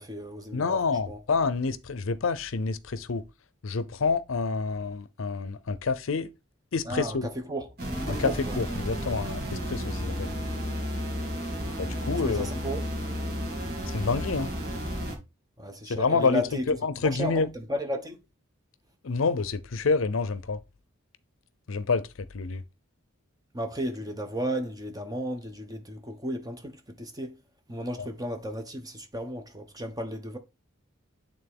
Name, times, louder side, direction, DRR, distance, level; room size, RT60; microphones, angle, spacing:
voice 1, 0.0-1.2 6.9-7.7 8.1-8.5 12.1-12.9 15.6-16.6 17.0-18.2 23.5-27.4 27.7-30.4, equal, 20° right, 1.1 m, -34 dB
voice 2, 0.5-3.2 3.6-6.3 6.7-7.3 8.1-8.3 8.6-10.3 11.8-12.5 13.9-14.5 15.8-17.5 19.0-20.6 21.7-22.6 28.0-28.1, left 4 dB, 70° left, 0.6 m, -28 dB
sound 1, 7.8-15.2, equal, 50° right, 2.3 m, -32 dB
9.0 x 3.6 x 3.6 m
head